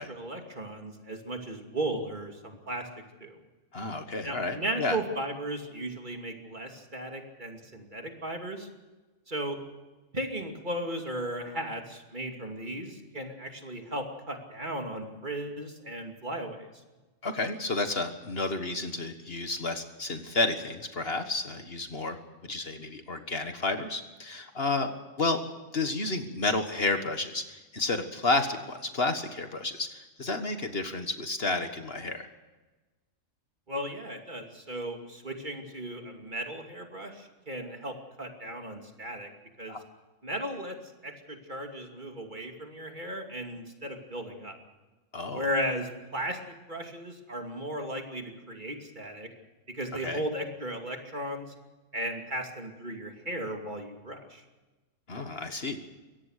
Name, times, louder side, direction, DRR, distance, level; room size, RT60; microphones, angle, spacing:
voice 1, 0.0-2.9 3.2-3.4 4.2-8.7 9.3-9.6 10.1-16.7 33.7-39.3 39.6-39.8 40.2-40.8 41.0-44.6 45.3-49.3 49.7-51.5 51.9-54.4, right 1 dB, 35° right, 3 dB, 2.8 m, -36 dB
voice 2, 3.7-5.0 17.2-22.2 22.4-24.9 25.2-25.4 25.7-32.3 39.7-39.8 45.1-45.4 50.0-50.2 55.1-55.8, left 2 dB, 50° left, 7 dB, 1.7 m, -31 dB
23.5 x 17.5 x 6.6 m, 1.2 s
omnidirectional pair, 1.3 m